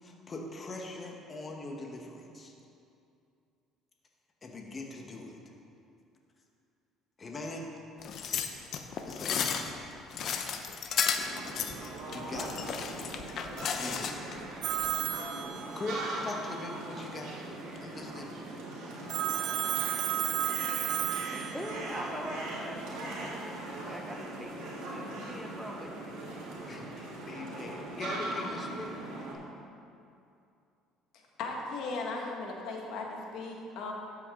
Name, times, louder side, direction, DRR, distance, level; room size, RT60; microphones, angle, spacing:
voice 1, 0.0-2.5 4.4-5.4 7.2-7.7 9.1-10.1 12.1-12.7 13.6-14.4 15.7-17.4 17.8-18.3 26.7-29.0, left 2 dB, 30° left, 1 dB, 1.3 m, -41 dB
sound 1, 8.0-14.4 14.8-14.9, left 7 dB, 50° left, 0.7 m, -33 dB
sound 2, 11.3-29.3, right 2 dB, 80° right, 2.3 m, -40 dB
Telephone, 14.6-16.1 19.1-21.9, right 10 dB, 60° right, 0.5 m, -32 dB
voice 2, 20.3-21.0 21.3-23.6 23.9-26.0, equal, ahead, 1 dB, 0.8 m, -43 dB
voice 3, 31.4-33.9, left 3 dB, 70° left, 0 dB, 1.6 m, -37 dB
12.5 x 8.3 x 3.8 m, 2.6 s
cardioid pair, 120°, 0 cm